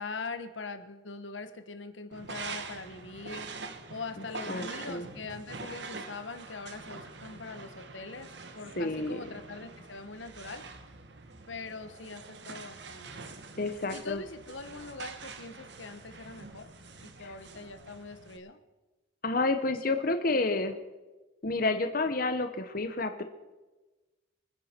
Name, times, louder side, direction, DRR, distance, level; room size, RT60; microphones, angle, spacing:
voice 1, 0.0-3.6 3.9-10.6 11.5-13.3 13.9-16.7 17.0-18.6, left 3 dB, 80° left, 10 dB, 1.3 m, -42 dB
sound 1, 2.1-18.4, right 4 dB, 65° right, 1.3 m, -45 dB
voice 2, 4.5-5.1 8.8-9.2 13.6-14.2 17.2-17.3 19.2-20.8 21.4-23.2, left 2 dB, 50° left, 8 dB, 1.0 m, -29 dB
26.0 x 10.0 x 4.5 m, 1.2 s
head